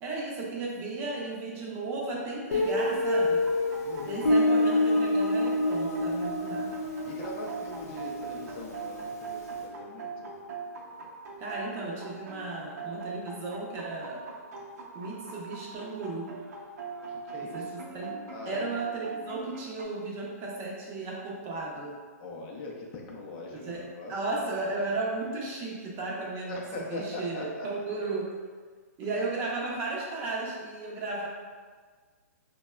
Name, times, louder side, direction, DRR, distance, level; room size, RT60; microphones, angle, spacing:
voice 1, 0.0-3.4 4.1-6.7 11.4-14.2 14.9-16.3 17.5-18.1 18.5-22.0 23.6-23.8 24.1-26.6 26.9-28.3 29.0-31.3, right 3 dB, 25° right, -3 dB, 0.5 m, -34 dB
Guitar, 2.5-9.2, left 1 dB, 75° left, 0.7 m, -27 dB
sound 1, 3.4-19.8, right 4 dB, 70° right, 0.6 m, -41 dB
voice 2, 3.8-4.3 7.1-10.4 17.2-17.9 18.3-18.5 22.2-24.1 26.5-27.7, left 2 dB, 35° left, -2 dB, 0.5 m, -41 dB
3.9 x 2.1 x 2.2 m, 1.5 s
hypercardioid pair, 145°, 9 cm